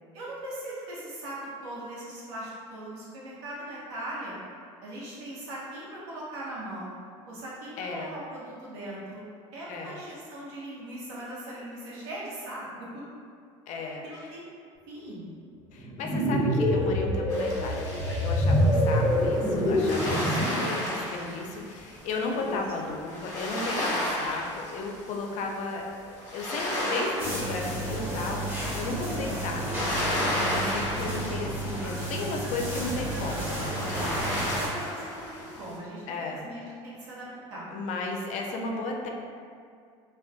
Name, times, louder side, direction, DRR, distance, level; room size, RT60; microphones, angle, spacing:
voice 1, 0.1-1.4 1.6-4.4 4.8-6.9 7.3-9.2 9.5-13.0 14.0-14.4 14.9-15.3 18.4-18.9 22.3-22.9 29.1-29.4 34.1-37.6, right 1 dB, 75° right, -7 dB, 0.8 m, -40 dB
voice 2, 7.8-8.1 9.7-10.0 13.7-14.3 15.7-33.7 36.1-36.5 37.7-39.1, left 3 dB, 50° left, 1 dB, 0.4 m, -34 dB
sound 1, 15.8-20.6, equal, 5° left, 0.6 m, -25 dB
sound 2, 17.3-35.8, left 1 dB, 20° left, 1.0 m, -34 dB
sound 3, 27.2-34.7, right 1 dB, 15° right, 0.9 m, -32 dB
2.4 x 2.2 x 2.3 m, 2.3 s
hypercardioid pair, 80°, 16 cm